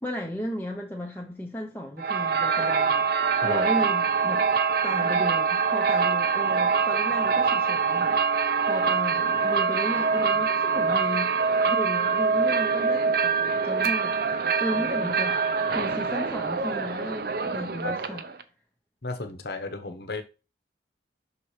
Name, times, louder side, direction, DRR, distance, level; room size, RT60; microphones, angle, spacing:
voice 1, 0.0-4.5 4.8-8.2 8.6-11.4 11.6-15.4 15.7-18.2, equal, 10° left, 0.8 m, -34 dB
sound 1, 2.0-18.4, right 5 dB, 55° right, 0.6 m, -24 dB
voice 2, 19.0-20.2, left 3 dB, 60° left, 1.0 m, -33 dB
5.8 x 4.3 x 4.9 m
head